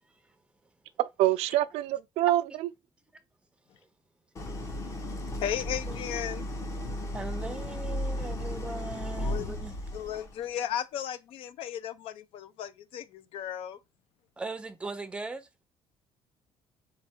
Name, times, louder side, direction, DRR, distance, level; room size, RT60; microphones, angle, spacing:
voice 1, 0.1-0.4 3.8-3.9 5.9-6.0 7.1-9.7 14.4-15.5, right 3 dB, 10° right, 0.5 m, -39 dB
voice 2, 1.0-2.4, right 14 dB, 70° right, 0.4 m, -25 dB
Idling, 4.4-10.4, left 1 dB, 30° left, 0.9 m, -35 dB
voice 3, 5.4-6.4 9.2-9.5 9.9-13.8, left 10 dB, 60° left, 0.5 m, -35 dB
3.5 x 3.3 x 4.3 m
cardioid pair, 170°, 11 cm